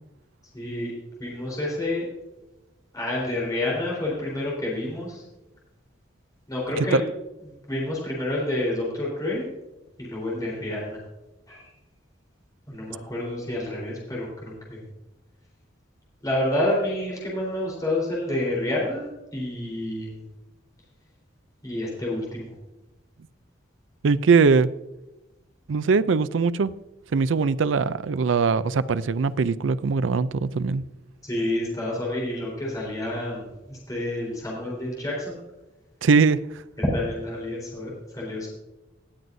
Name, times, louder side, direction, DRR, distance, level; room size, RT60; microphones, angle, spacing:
voice 1, 0.5-0.9 1.2-2.1 2.9-5.2 6.5-7.0 7.7-9.5 10.0-11.0 11.5-11.7 12.7-14.8 16.2-20.2 21.6-22.5 31.2-35.4 36.8-38.5, left 1 dB, 20° left, 4.0 m, -29 dB
voice 2, 24.0-24.7 25.7-26.7 27.1-30.8 36.0-36.4, right 5 dB, 80° right, 0.4 m, -21 dB
18.5 x 7.8 x 2.7 m
head